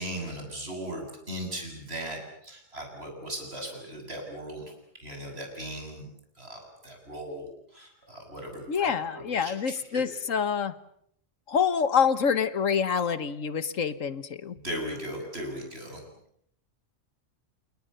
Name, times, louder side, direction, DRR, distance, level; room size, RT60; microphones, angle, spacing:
voice 1, 0.0-4.7 5.0-6.1 6.4-7.5 7.7-9.6 9.9-10.0 14.5-16.0, right 1 dB, 50° right, 3 dB, 8.1 m, -38 dB
voice 2, 8.7-10.7 11.5-14.6, left 7 dB, 80° left, 14 dB, 1.7 m, -26 dB
29.5 x 29.0 x 6.8 m, 0.69 s
omnidirectional pair, 1.3 m